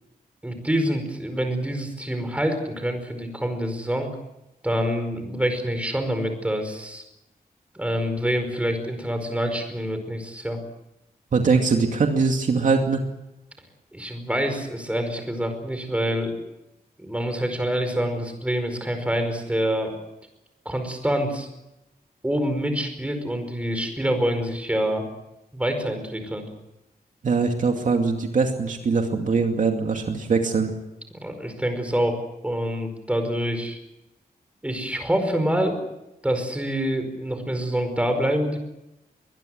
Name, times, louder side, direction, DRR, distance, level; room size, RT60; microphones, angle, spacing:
voice 1, 0.4-4.1 4.6-7.0 7.7-10.6 13.9-16.3 17.0-19.9 20.6-21.5 22.2-25.1 25.5-26.4 31.2-33.8 34.6-35.8 36.2-38.6, equal, 10° right, 6 dB, 5.0 m, -26 dB
voice 2, 11.3-13.0 27.2-30.7, right 4 dB, 55° right, 3 dB, 2.4 m, -22 dB
23.5 x 21.0 x 8.0 m, 0.93 s
wide cardioid pair, 150°, 16 cm